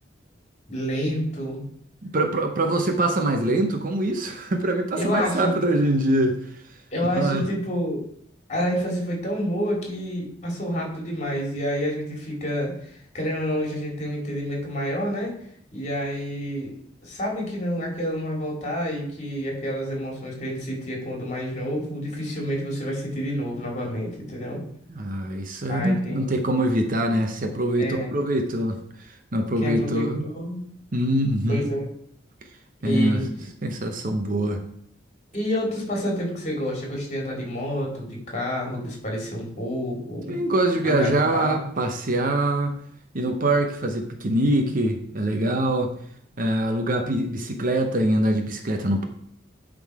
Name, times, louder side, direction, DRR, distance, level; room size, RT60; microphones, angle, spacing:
voice 1, 0.7-1.7 4.9-5.5 6.9-8.0 8.5-15.4 15.7-16.7 17.0-24.6 25.7-26.3 27.8-28.1 29.6-30.6 31.5-31.9 32.8-33.2 35.3-40.4 40.8-41.6, equal, 35° left, -1 dB, 2.7 m, -28 dB
voice 2, 2.0-6.4 7.1-7.4 24.9-28.8 29.1-30.2 30.9-31.7 32.8-33.2 33.6-34.6 40.3-42.8 43.1-45.9 46.4-49.0, right 1 dB, 45° right, 4 dB, 0.8 m, -24 dB
11.0 x 3.8 x 4.8 m, 0.67 s
head